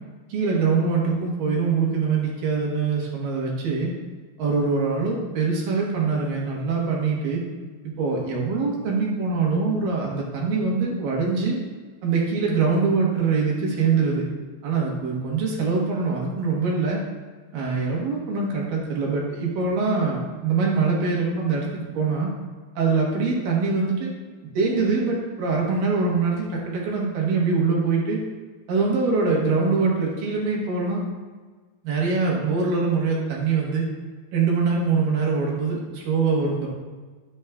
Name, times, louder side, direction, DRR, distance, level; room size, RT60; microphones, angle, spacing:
voice 1, 0.3-3.9 4.4-7.4 7.8-11.6 12.0-14.3 14.6-17.0 17.5-22.3 22.8-24.1 24.5-28.2 28.7-31.0 31.8-33.8 34.3-36.7, right 4 dB, 65° right, -2 dB, 2.7 m, -23 dB
10.0 x 8.8 x 2.3 m, 1.4 s
omnidirectional pair, 4.6 m